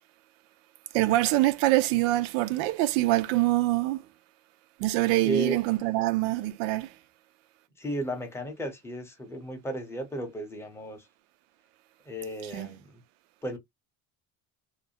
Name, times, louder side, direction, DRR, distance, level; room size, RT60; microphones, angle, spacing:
voice 1, 0.9-4.0 4.8-6.9 12.5-12.7, right 17 dB, 75° right, 0.6 m, -24 dB
voice 2, 5.2-5.6 7.8-11.0 12.1-12.8 13.4-13.6, right 1 dB, 5° left, 0.5 m, -34 dB
2.5 x 2.1 x 2.7 m
cardioid pair, 140°, 44 cm